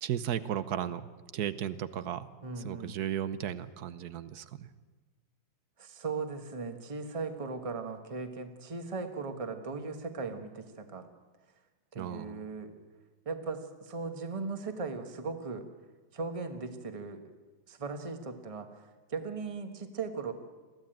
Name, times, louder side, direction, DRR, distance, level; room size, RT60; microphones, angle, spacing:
voice 1, 0.0-2.3 2.6-4.7 12.0-12.4, right 10 dB, 60° right, 14 dB, 1.2 m, -35 dB
voice 2, 2.4-3.0 5.8-11.1 11.9-12.7 13.2-15.7 16.1-17.2 17.7-18.7 19.1-20.3, right 4 dB, 20° right, 7 dB, 1.2 m, -38 dB
22.0 x 15.0 x 9.0 m, 1.3 s
omnidirectional pair, 2.1 m